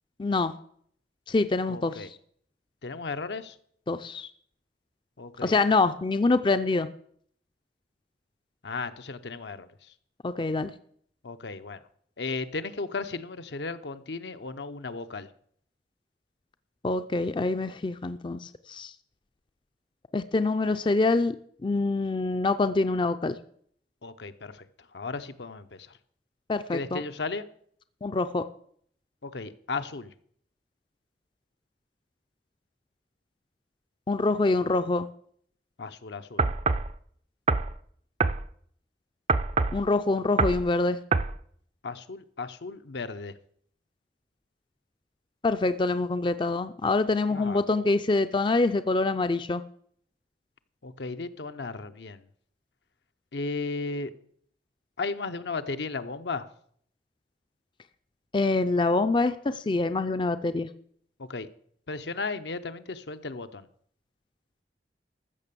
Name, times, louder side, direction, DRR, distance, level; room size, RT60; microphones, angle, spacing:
voice 1, 0.2-0.5 1.3-2.1 3.9-4.3 5.4-6.9 10.2-10.7 16.8-18.9 20.1-21.4 21.6-23.4 26.5-27.0 28.0-28.5 34.1-35.1 39.7-41.0 45.4-49.6 58.3-60.7, left 3 dB, 25° left, 11 dB, 0.4 m, -25 dB
voice 2, 1.7-2.1 2.8-3.6 5.2-5.6 8.6-9.9 11.2-11.8 12.2-15.3 24.0-24.7 24.9-26.0 26.7-27.5 29.2-30.1 35.8-36.5 41.8-43.3 47.3-47.6 50.8-52.2 53.3-54.1 55.0-56.5 61.2-61.5 61.9-63.7, left 3 dB, 75° left, 9 dB, 0.8 m, -35 dB
sound 1, 36.4-36.9 37.5-37.7 38.2-38.4 39.3-39.8 40.4-40.6 41.1-41.3, right 4 dB, 35° right, 0.5 m, -24 dB
14.0 x 6.7 x 6.9 m, 0.64 s
head